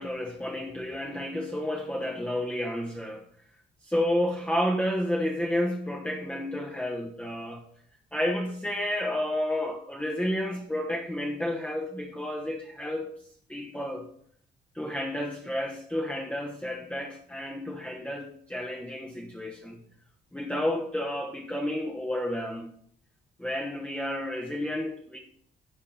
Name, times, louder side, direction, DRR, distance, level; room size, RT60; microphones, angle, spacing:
voice 1, 0.0-3.3 3.8-7.6 8.1-13.1 13.5-14.1 14.7-19.8 20.3-22.7 23.4-25.2, left 1 dB, 5° left, 0.9 m, -31 dB
10.0 x 3.6 x 4.3 m
cardioid pair, 90°, 20 cm